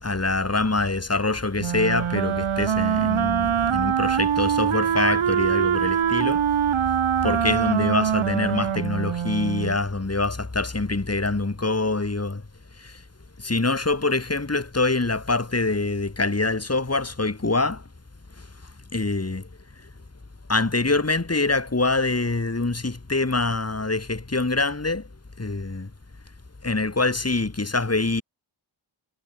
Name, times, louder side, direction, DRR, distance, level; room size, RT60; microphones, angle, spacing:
voice 1, 0.0-6.5 7.2-12.4 12.8-12.9 13.4-17.8 18.9-19.5 20.5-25.1 25.4-25.9 26.6-28.2, left 3 dB, 30° left, 3.1 m, -25 dB
Wind instrument woodwind instrument, 1.6-9.8, right 9 dB, 75° right, 0.9 m, -23 dB
cardioid pair, 45°, 49 cm